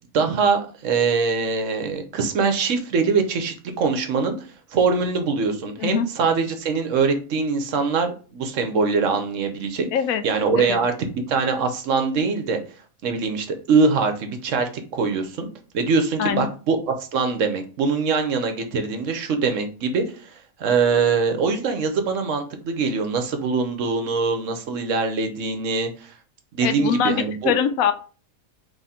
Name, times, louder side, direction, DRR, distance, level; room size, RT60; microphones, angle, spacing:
voice 1, 0.1-9.9 10.2-12.6 13.0-15.5 15.7-16.8 17.1-20.3 20.6-26.1 26.5-27.5, right 4 dB, 65° right, 7 dB, 1.0 m, -23 dB
voice 2, 5.8-6.1 9.9-10.2 10.6-10.8 16.2-16.5 26.6-27.9, left 8 dB, 75° left, 10 dB, 1.0 m, -23 dB
3.6 x 3.3 x 4.2 m, 0.38 s
omnidirectional pair, 1.5 m